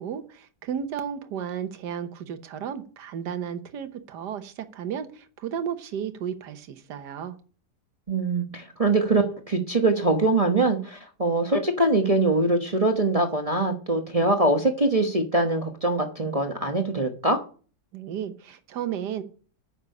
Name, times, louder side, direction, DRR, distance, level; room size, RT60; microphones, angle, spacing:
voice 1, 0.0-7.4 17.9-19.2, right 8 dB, 85° right, 9 dB, 1.6 m, -33 dB
voice 2, 8.1-17.4, right 2 dB, 25° right, 4 dB, 1.0 m, -23 dB
9.7 x 6.6 x 6.7 m, 0.40 s
omnidirectional pair, 1.8 m